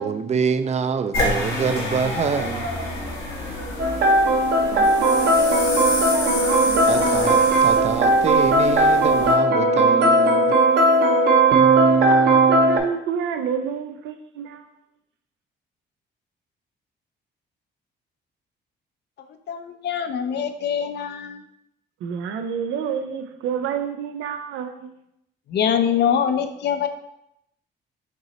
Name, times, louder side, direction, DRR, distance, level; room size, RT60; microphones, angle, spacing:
voice 1, 0.0-2.7 6.9-10.5, right 6 dB, 35° right, 10 dB, 0.4 m, -25 dB
sound 1, 1.1-9.3, left 1 dB, 90° left, 1.5 m, -29 dB
sound 2, 3.8-12.8, right 2 dB, 55° right, 0.8 m, -17 dB
voice 2, 4.7-7.4 12.1-14.6 22.0-24.9, right 7 dB, 90° right, 7 dB, 0.5 m, -29 dB
voice 3, 19.5-21.4 25.5-26.9, left 8 dB, 60° left, 8 dB, 0.5 m, -23 dB
5.3 x 3.0 x 2.9 m, 0.80 s
cardioid pair, 90°, 20 cm